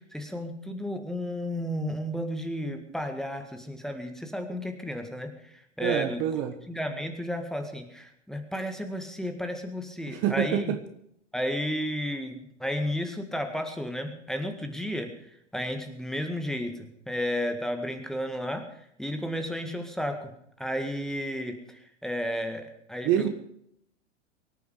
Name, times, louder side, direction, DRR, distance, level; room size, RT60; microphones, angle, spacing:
voice 1, 0.0-6.2 6.7-10.8 11.3-15.1 15.5-18.7 19.0-20.3 20.6-23.3, equal, ahead, 5 dB, 1.8 m, -33 dB
voice 2, 5.8-6.5 10.1-10.8 23.0-23.3, right 10 dB, 35° right, 8 dB, 1.4 m, -26 dB
24.0 x 9.2 x 5.1 m, 0.71 s
figure-of-eight pair, 95°, 36 cm